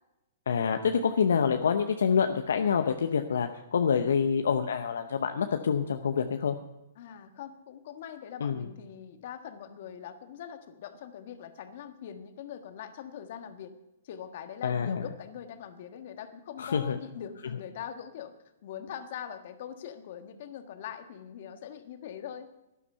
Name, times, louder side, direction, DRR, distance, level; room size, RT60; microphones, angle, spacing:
voice 1, 0.5-6.6 8.4-8.7 14.6-15.0 16.6-17.0, left 6 dB, 75° left, 6 dB, 0.8 m, -27 dB
voice 2, 7.0-13.7 14.0-18.3 18.6-22.5, left 9 dB, 55° left, 8 dB, 1.4 m, -42 dB
12.5 x 11.0 x 5.7 m, 0.95 s
hypercardioid pair, 125°, 0 cm